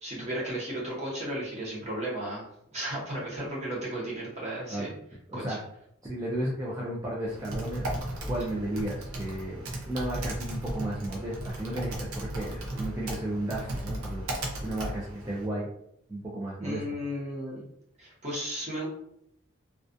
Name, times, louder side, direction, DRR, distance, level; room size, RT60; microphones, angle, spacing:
voice 1, 0.0-2.4 2.7-5.0 5.3-5.6 16.6-17.7 18.0-18.9, right 1 dB, 30° right, -5 dB, 0.8 m, -34 dB
voice 2, 6.0-7.9 8.3-15.7 16.1-16.8, right 1 dB, 15° right, -5 dB, 0.3 m, -34 dB
Typing, 7.3-15.5, right 1 dB, 80° right, 0.6 m, -35 dB
2.3 x 2.3 x 2.5 m, 0.74 s
head